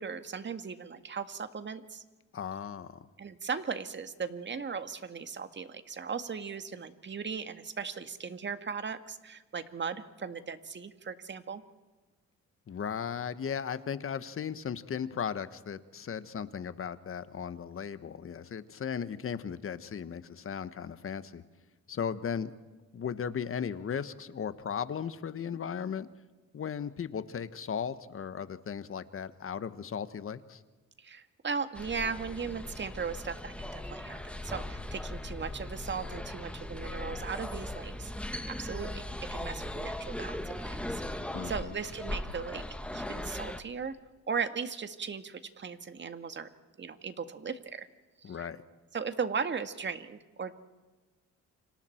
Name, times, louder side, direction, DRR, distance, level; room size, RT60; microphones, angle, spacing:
voice 1, 0.0-2.0 3.2-11.6 31.0-38.1 38.5-39.0 39.3-42.6 42.9-44.0 44.3-46.5 46.8-47.9 48.2-48.5 48.9-50.5, right 5 dB, 40° right, 9 dB, 1.8 m, -37 dB
voice 2, 2.3-3.1 12.7-21.4 21.9-22.5 22.9-26.1 26.5-30.6 41.3-41.8 48.2-48.6, left 7 dB, 45° left, 12 dB, 1.4 m, -36 dB
sound 1, 31.7-43.6, left 1 dB, 5° left, 1.8 m, -39 dB
29.5 x 26.5 x 4.6 m, 1.3 s
cardioid pair, 90°, 30 cm